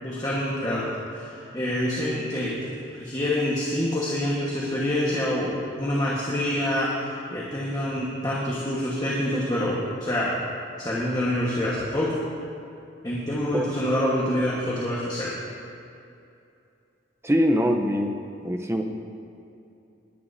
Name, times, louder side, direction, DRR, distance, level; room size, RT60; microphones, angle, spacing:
voice 1, 0.0-2.6 2.9-10.3 10.8-12.2 13.0-15.4, left 1 dB, 20° left, -6 dB, 1.3 m, -26 dB
voice 2, 17.2-18.2 18.4-18.8, equal, 15° right, 3 dB, 0.7 m, -23 dB
19.0 x 10.0 x 2.7 m, 2.6 s
head